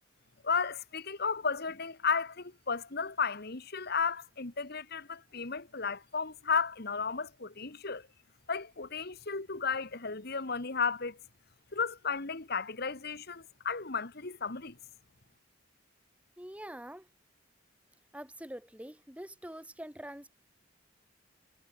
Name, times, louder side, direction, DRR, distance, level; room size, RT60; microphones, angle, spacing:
voice 1, 0.4-8.1 8.5-11.2 11.7-14.8, left 5 dB, 50° left, 1.6 m, -34 dB
voice 2, 16.4-17.1 18.1-20.3, right 1 dB, 5° right, 2.5 m, -45 dB
head